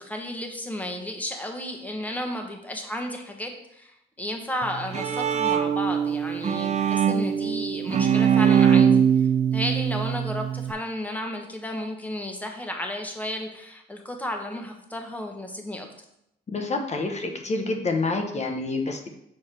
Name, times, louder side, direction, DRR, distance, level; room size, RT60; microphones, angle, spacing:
voice 1, 0.0-3.9 4.2-9.0 9.5-15.9, left 1 dB, 10° left, 2 dB, 1.2 m, -33 dB
Bowed string instrument, 4.6-10.7, right 8 dB, 35° right, 0.5 m, -22 dB
voice 2, 16.5-19.1, left 3 dB, 35° left, 3 dB, 1.0 m, -28 dB
6.6 x 4.7 x 4.4 m, 0.80 s
cardioid pair, 90°, 20 cm